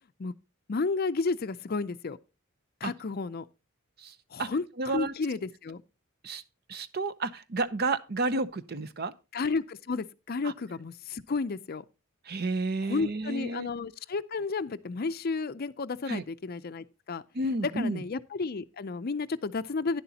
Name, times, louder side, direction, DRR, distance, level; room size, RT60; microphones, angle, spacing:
voice 1, 0.7-2.2 2.8-3.5 4.3-5.8 9.3-11.8 12.9-17.2 17.6-20.0, left 4 dB, 45° left, 0.5 m, -32 dB
voice 2, 4.0-4.5 4.8-5.1 6.2-6.4 6.7-9.1 10.4-10.5 12.2-13.7 16.1-16.2 17.3-18.0, right 2 dB, 50° right, 0.7 m, -31 dB
11.0 x 10.5 x 2.8 m
head